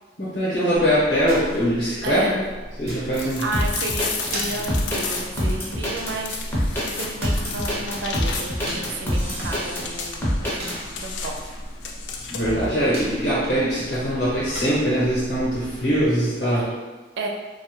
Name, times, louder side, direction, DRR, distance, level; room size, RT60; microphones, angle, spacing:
voice 1, 0.2-2.4 2.8-3.4 12.3-16.7, equal, 60° left, -9 dB, 0.8 m, -22 dB
sound 1, 0.7-16.0, equal, 55° right, 0.8 m, -37 dB
voice 2, 2.0-2.4 3.2-6.4 6.8-11.5 16.5-16.8 17.2-17.3, right 2 dB, 75° right, 1 dB, 0.4 m, -32 dB
sound 2, 3.1-5.5 6.1-8.8 9.6-12.7, left 5 dB, 85° left, 0.3 m, -34 dB
sound 3, 3.5-10.8, equal, 15° left, 0.5 m, -25 dB
2.2 x 2.1 x 2.9 m, 1.2 s
head